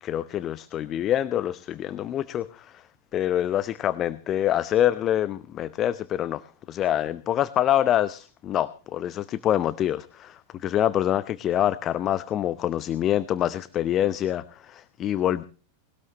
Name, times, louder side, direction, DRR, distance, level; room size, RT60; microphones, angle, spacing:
voice 1, 0.0-2.8 3.1-6.4 6.7-15.4, left 11 dB, 30° left, 15 dB, 0.7 m, -26 dB
20.5 x 18.5 x 3.0 m, 0.38 s
figure-of-eight pair, 90°, 0 cm